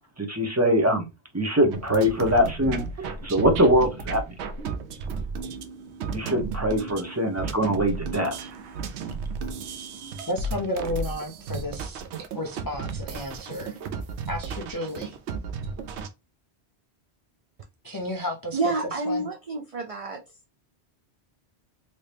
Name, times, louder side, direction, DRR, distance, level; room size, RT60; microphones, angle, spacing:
voice 1, 0.2-1.1 1.3-4.2 6.1-8.4, equal, 15° right, 0.6 m, -23 dB
sound 1, 1.7-16.1, right 4 dB, 85° right, 0.9 m, -34 dB
voice 2, 10.3-12.0 12.3-13.8 14.3-15.2 17.8-18.6 19.1-19.3, left 1 dB, 35° left, 0.3 m, -32 dB
voice 3, 18.5-20.2, right 3 dB, 60° right, 0.3 m, -28 dB
3.0 x 2.7 x 3.3 m
omnidirectional pair, 1.1 m